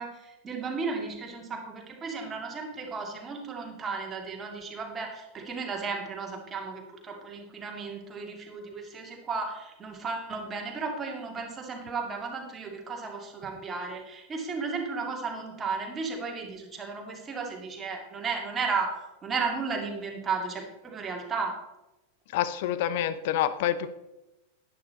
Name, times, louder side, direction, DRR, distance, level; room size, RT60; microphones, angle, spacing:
voice 1, 0.0-18.9 19.2-21.5, right 4 dB, 20° right, 1 dB, 2.3 m, -34 dB
voice 2, 22.3-23.9, left 11 dB, 50° left, 14 dB, 0.7 m, -27 dB
11.0 x 10.0 x 4.1 m, 0.98 s
figure-of-eight pair, 90°, 0 cm